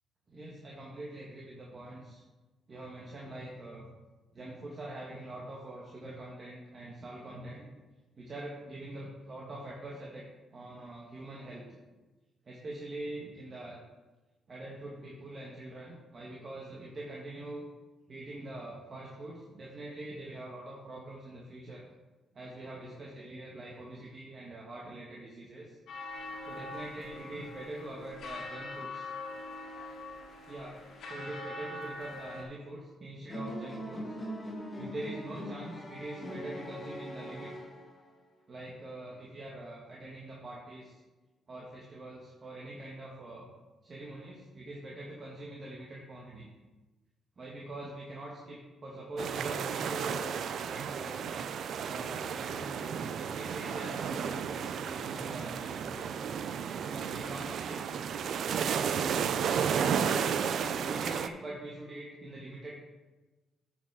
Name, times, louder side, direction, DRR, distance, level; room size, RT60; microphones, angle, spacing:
voice 1, 0.3-2.2 2.7-4.0 4.3-7.7 8.1-10.2 10.5-11.7 12.4-13.8 14.5-17.7 18.1-21.8 22.3-25.8 26.4-29.1 30.5-34.1 34.7-37.5 38.5-41.0 41.5-43.5 43.8-46.5 47.4-51.5 51.9-56.1 56.8-57.9 58.6-60.1 60.5-62.7, right 1 dB, 40° right, -3 dB, 1.6 m, -44 dB
sound 1, 25.9-32.4, left 2 dB, 70° left, 1.7 m, -43 dB
sound 2, 33.3-38.2, equal, 25° left, 1.9 m, -41 dB
sound 3, 49.2-61.3, right 7 dB, 65° right, 0.5 m, -33 dB
9.3 x 6.1 x 4.7 m, 1.2 s
cardioid pair, 90°, 0 cm